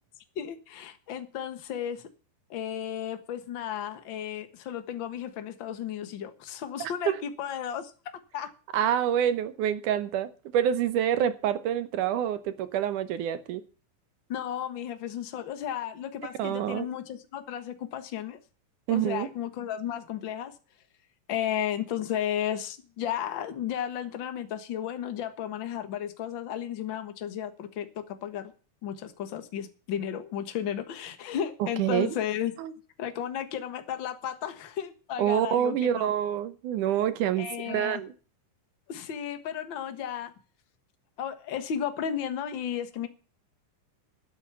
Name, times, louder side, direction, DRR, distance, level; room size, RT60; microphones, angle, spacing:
voice 1, 0.3-2.0 2.5-7.9 8.3-8.5 14.3-18.4 18.9-20.6 21.3-28.5 28.8-32.5 33.0-36.1 37.4-38.0 38.9-40.3 41.2-43.1, left 9 dB, 50° left, 9 dB, 1.7 m, -34 dB
voice 2, 6.8-7.2 8.7-13.6 16.4-16.9 18.9-19.3 31.8-32.2 32.6-32.7 35.2-38.1, right 10 dB, 75° right, 12 dB, 2.4 m, -27 dB
12.5 x 8.3 x 7.0 m, 0.37 s
omnidirectional pair, 3.8 m